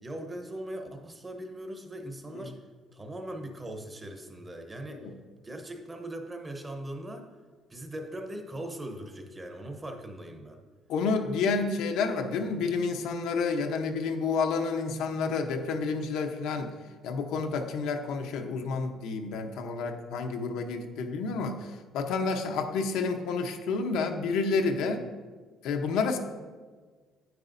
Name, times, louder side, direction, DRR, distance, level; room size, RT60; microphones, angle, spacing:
voice 1, 0.0-2.6 2.9-5.1 5.4-7.3 7.7-10.6, right 1 dB, 15° right, 4 dB, 0.8 m, -40 dB
voice 2, 10.9-16.7 17.0-21.7 21.9-25.0 25.6-26.2, left 4 dB, 80° left, 5 dB, 0.8 m, -29 dB
9.7 x 9.2 x 2.6 m, 1.5 s
cardioid pair, 160°, 0 cm